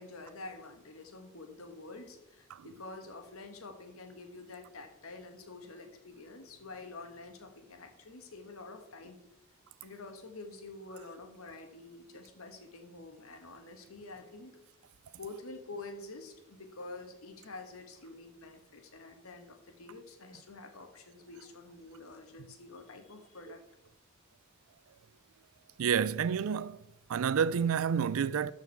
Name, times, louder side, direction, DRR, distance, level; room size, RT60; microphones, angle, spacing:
voice 1, 0.0-9.2 9.8-14.6 15.2-23.6, left 3 dB, 70° left, 1.4 m, -48 dB
voice 2, 25.8-26.8 27.1-28.5, right 7 dB, 70° right, 0.4 m, -29 dB
13.0 x 5.8 x 4.6 m
head